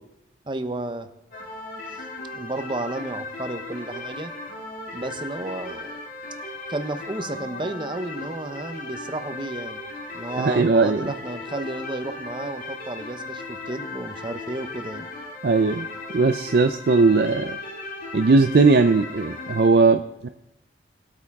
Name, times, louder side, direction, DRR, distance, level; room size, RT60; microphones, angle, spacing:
voice 1, 0.4-1.1 1.9-4.3 4.9-6.0 6.7-9.8 10.1-15.1, right 2 dB, 25° right, 8 dB, 0.8 m, -32 dB
sound 1, 1.3-19.7, left 2 dB, 50° left, 2.7 m, -37 dB
voice 2, 10.4-11.0 15.4-15.9 16.1-17.6 18.1-20.3, right 3 dB, 55° right, 8 dB, 0.4 m, -18 dB
20.0 x 8.6 x 3.6 m, 0.89 s
head